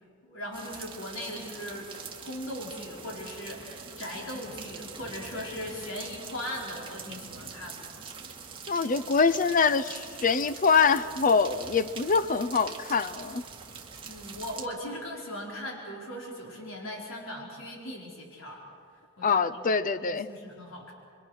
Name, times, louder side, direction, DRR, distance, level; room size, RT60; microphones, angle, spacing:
voice 1, 0.2-1.9 2.2-7.8 14.0-18.6 19.2-19.6 20.0-20.9, left 1 dB, 70° left, -2 dB, 4.4 m, -39 dB
sound 1, 0.5-14.7, right 5 dB, 25° right, 2.0 m, -44 dB
voice 2, 8.7-13.4 19.2-20.3, left 5 dB, 40° left, 15 dB, 0.6 m, -24 dB
29.0 x 23.0 x 6.4 m, 2.3 s
head